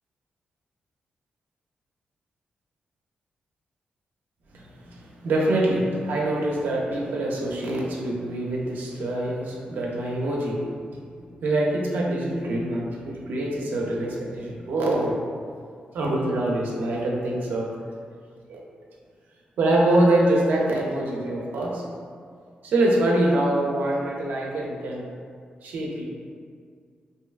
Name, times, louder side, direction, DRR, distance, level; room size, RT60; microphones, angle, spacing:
voice 1, 4.5-10.6 11.4-15.2 15.9-17.7 18.5-18.6 19.6-21.8 22.6-25.0 25.6-26.0, right 1 dB, 80° right, -3 dB, 0.4 m, -24 dB
2.6 x 2.2 x 2.3 m, 2.1 s
cardioid pair, 85°, 3 cm